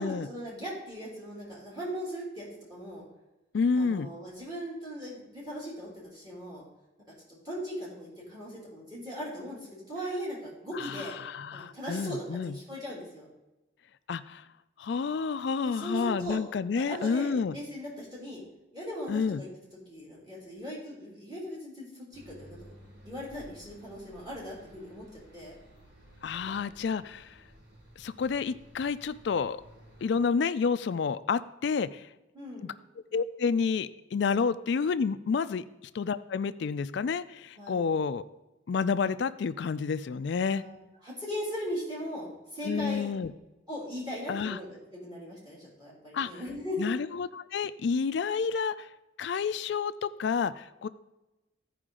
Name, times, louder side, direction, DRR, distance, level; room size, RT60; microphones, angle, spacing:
voice 1, 0.0-3.0 3.8-6.6 7.4-11.2 11.5-13.3 15.6-16.4 16.8-18.4 18.7-19.5 19.9-22.6 23.0-25.1 25.3-25.5 26.3-26.6 32.3-32.7 37.6-37.9 40.4-40.8 41.0-43.1 43.7-46.9, equal, 20° right, -5 dB, 2.6 m, -39 dB
voice 2, 3.5-4.1 10.7-12.6 14.1-14.4 14.8-17.6 19.1-19.4 26.2-27.4 28.0-29.6 30.0-32.1 32.6-32.7 33.1-35.6 35.9-38.2 38.7-40.6 42.6-43.3 44.3-44.6 46.1-46.3 46.8-48.9 49.2-50.9, left 5 dB, 60° left, 14 dB, 0.3 m, -29 dB
sound 1, 22.1-30.2, equal, 65° right, 3.6 m, -55 dB
15.0 x 5.0 x 3.7 m, 1.0 s
head